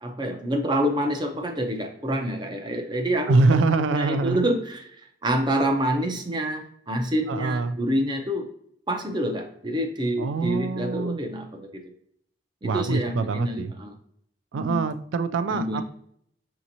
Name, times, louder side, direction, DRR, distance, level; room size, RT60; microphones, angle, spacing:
voice 1, 0.0-3.4 3.7-8.5 8.9-11.8 12.6-13.9 14.5-14.8 15.5-15.8, equal, 25° right, 4 dB, 0.5 m, -27 dB
voice 2, 3.3-4.4 7.3-7.8 10.2-11.2 12.6-13.7 14.5-15.8, right 3 dB, 85° right, 12 dB, 0.3 m, -24 dB
6.0 x 2.9 x 2.6 m, 0.69 s
head